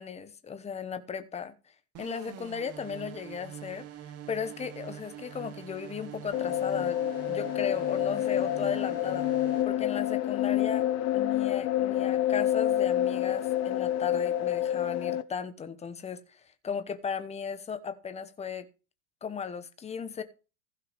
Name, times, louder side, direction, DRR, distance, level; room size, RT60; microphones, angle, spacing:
voice 1, 0.0-1.5 2.0-7.0 7.3-9.3 9.6-10.8 11.1-18.7 19.2-20.2, left 6 dB, 15° left, 1.0 m, -36 dB
sound 1, 1.9-9.6, right 10 dB, 30° right, 1.1 m, -44 dB
sound 2, 6.3-15.2, left 12 dB, 35° left, 0.8 m, -28 dB
15.5 x 5.7 x 5.1 m
supercardioid pair, 150°, 45 cm